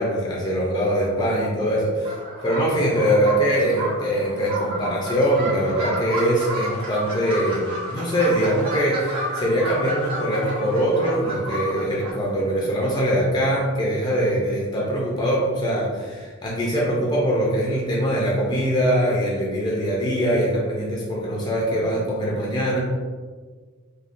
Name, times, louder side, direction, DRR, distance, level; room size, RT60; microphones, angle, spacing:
voice 1, 0.0-22.8, equal, 20° left, -4 dB, 0.4 m, -22 dB
sound 1, 2.0-12.1, right 1 dB, 25° right, 0.8 m, -31 dB
3.5 x 2.2 x 2.5 m, 1.5 s
head